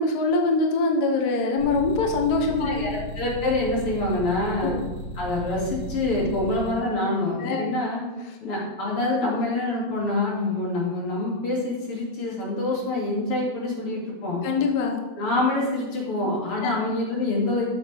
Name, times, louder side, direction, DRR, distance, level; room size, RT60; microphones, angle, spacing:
voice 1, 0.0-2.9 4.6-4.8 7.4-7.6 14.4-15.0 16.6-16.7, left 3 dB, 50° left, 2 dB, 1.5 m, -23 dB
sound 1, 1.6-6.7, right 1 dB, 45° right, 4.6 m, -36 dB
voice 2, 2.6-4.8 5.2-8.0 8.4-14.4 15.2-17.7, left 2 dB, 85° left, -4 dB, 3.6 m, -26 dB
13.5 x 8.0 x 3.5 m, 1.1 s
omnidirectional pair, 2.4 m